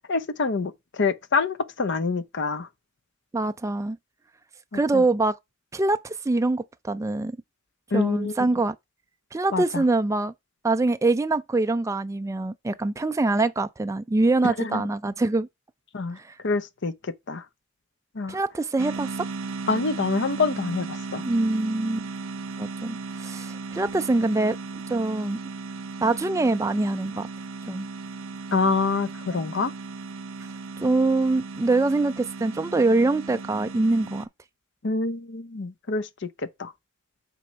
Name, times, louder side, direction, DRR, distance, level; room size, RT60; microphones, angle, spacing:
voice 1, 0.1-0.7 1.0-2.7 4.9-5.0 7.9-8.3 9.5-9.8 14.4-14.8 15.9-16.2 16.4-16.9 17.3-17.4 18.2-18.4 19.7-21.2 28.5-29.7 34.8-36.1 36.6-36.7, left 4 dB, 55° left, 0.7 m, -26 dB
voice 2, 3.3-4.0 4.7-5.3 5.7-7.4 7.9-8.8 9.3-10.3 10.6-15.5 16.2-16.3 18.3-19.3 21.2-22.1 22.6-24.6 24.9-25.4 26.0-27.3 27.7-27.9 30.8-34.3, right 2 dB, 15° right, 0.3 m, -24 dB
sound 1, 18.8-34.3, right 4 dB, 70° right, 0.7 m, -36 dB
6.1 x 3.9 x 5.6 m
head